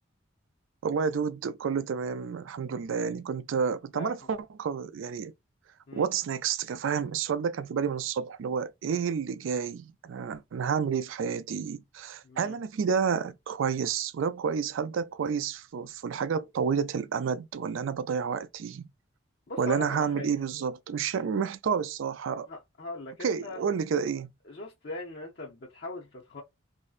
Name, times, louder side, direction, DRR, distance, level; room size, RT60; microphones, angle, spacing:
voice 1, 0.8-5.3 5.9-18.9 19.6-22.5 23.2-24.3, right 6 dB, 75° right, 0.3 m, -30 dB
voice 2, 12.2-12.5 19.5-20.4 22.5-23.6 24.5-26.4, left 3 dB, 50° left, 0.6 m, -40 dB
3.1 x 2.6 x 2.4 m
head